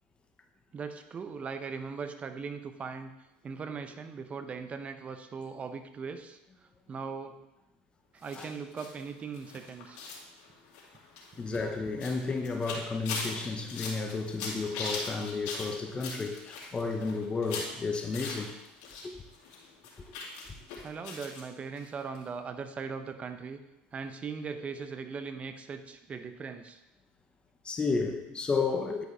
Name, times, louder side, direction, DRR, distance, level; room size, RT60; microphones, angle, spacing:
voice 1, 0.7-3.1 3.4-6.4 6.9-7.4 8.1-10.0 20.8-23.6 23.9-26.8 27.9-28.0, right 5 dB, 30° right, 8 dB, 0.7 m, -39 dB
sound 1, 8.2-19.1 19.3-21.4 21.8-21.9 22.2-22.3, left 4 dB, 75° left, 2.3 m, -41 dB
voice 2, 11.4-18.5 19.0-19.2 27.6-29.0, left 4 dB, 20° left, 4 dB, 0.8 m, -32 dB
10.5 x 4.9 x 3.3 m, 0.94 s
supercardioid pair, 95°, 4 cm